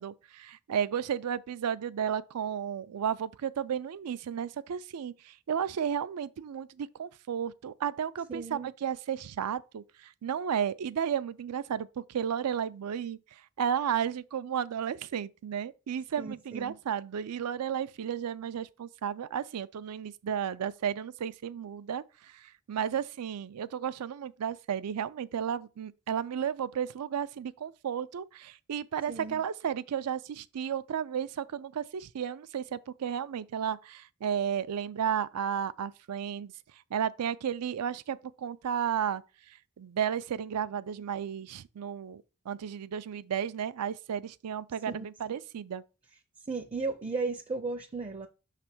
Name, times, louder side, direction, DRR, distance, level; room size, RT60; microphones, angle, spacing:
voice 1, 0.0-13.2 13.6-36.5 36.9-39.2 39.8-45.8, right 8 dB, 90° right, 0.4 m, -33 dB
voice 2, 8.3-8.7 16.2-16.8 29.1-29.4 44.9-45.1 46.5-48.3, right 4 dB, 25° right, 0.4 m, -35 dB
6.1 x 3.3 x 5.9 m
head